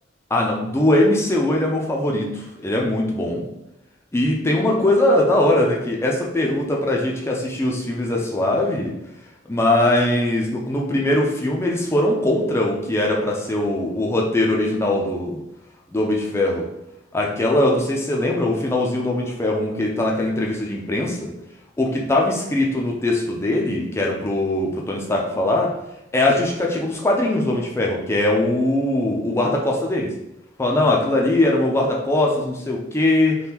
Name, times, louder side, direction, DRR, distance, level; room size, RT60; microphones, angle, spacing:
voice 1, 0.3-3.4 4.1-8.9 9.5-15.4 15.9-16.7 17.1-21.3 21.8-25.7 26.1-30.1 30.6-33.4, left 1 dB, 15° left, -1 dB, 0.4 m, -21 dB
3.4 x 2.2 x 2.8 m, 0.86 s
head